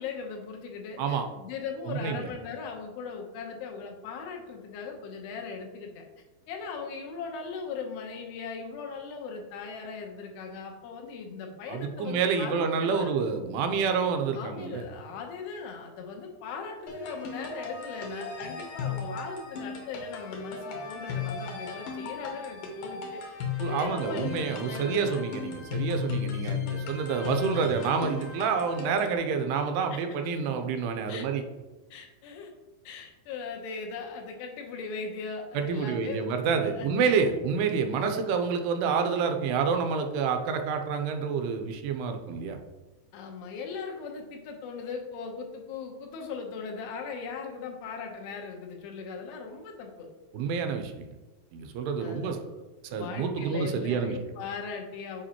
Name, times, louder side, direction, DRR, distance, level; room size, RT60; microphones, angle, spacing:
voice 1, 0.0-6.1 6.5-13.1 14.3-23.2 23.7-25.3 29.9-30.0 31.1-31.3 31.9-32.5 32.8-37.4 38.1-38.2 43.1-50.1 52.0-52.6 52.9-55.2, left 5 dB, 90° left, 2 dB, 3.0 m, -39 dB
voice 2, 1.9-2.3 11.7-14.8 23.6-31.4 35.5-42.6 50.3-51.1 51.5-52.4 52.9-54.1, right 5 dB, 85° right, 6 dB, 2.6 m, -28 dB
sound 1, 16.9-29.2, left 6 dB, 70° left, 2.3 m, -36 dB
6.9 x 5.0 x 2.9 m, 1.2 s
omnidirectional pair, 4.6 m